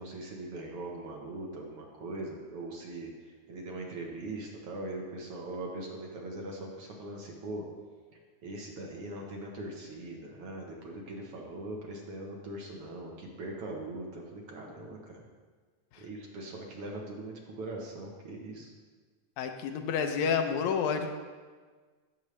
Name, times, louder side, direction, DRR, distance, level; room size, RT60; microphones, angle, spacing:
voice 1, 0.0-7.6 8.4-15.2 16.0-18.7, right 2 dB, 60° right, 0 dB, 1.7 m, -41 dB
voice 2, 19.4-21.1, left 6 dB, 80° left, 6 dB, 2.0 m, -29 dB
15.5 x 6.4 x 3.2 m, 1.5 s
omnidirectional pair, 3.3 m